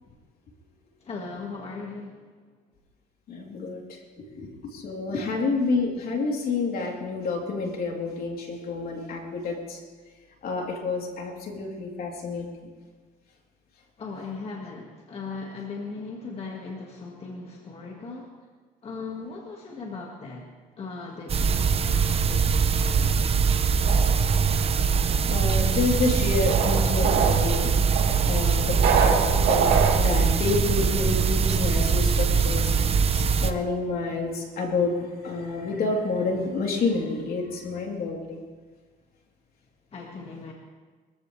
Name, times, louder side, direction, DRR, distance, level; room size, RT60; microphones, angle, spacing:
voice 1, 1.0-2.2 5.2-5.3 14.0-18.3 18.8-20.5 20.8-23.2 39.9-40.5, left 4 dB, 35° left, -1 dB, 2.0 m, -38 dB
voice 2, 3.3-3.8 4.2-9.8 10.4-12.5 25.3-27.8 28.3-29.2 29.5-32.7 33.1-38.4, left 3 dB, 60° left, -1 dB, 3.5 m, -29 dB
sound 1, 21.3-33.5, right 5 dB, 35° right, 0.8 m, -22 dB
sound 2, 23.8-30.0, right 6 dB, 75° right, 2.2 m, -27 dB
23.0 x 14.5 x 3.4 m, 1.4 s
cardioid pair, 110°, 17 cm